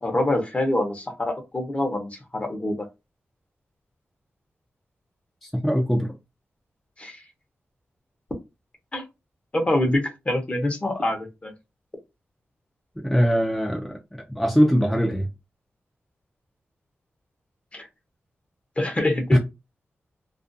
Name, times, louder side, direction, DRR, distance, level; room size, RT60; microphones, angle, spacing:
voice 1, 0.0-2.9 7.0-7.2 8.9-9.0 9.5-11.5 17.7-17.9 18.8-19.4, left 1 dB, 25° left, 0.7 m, -25 dB
voice 2, 5.4-6.1 13.0-14.0 14.4-15.3 19.3-19.4, equal, 5° left, 0.4 m, -21 dB
2.4 x 2.2 x 2.5 m
wide cardioid pair, 105°, 5 cm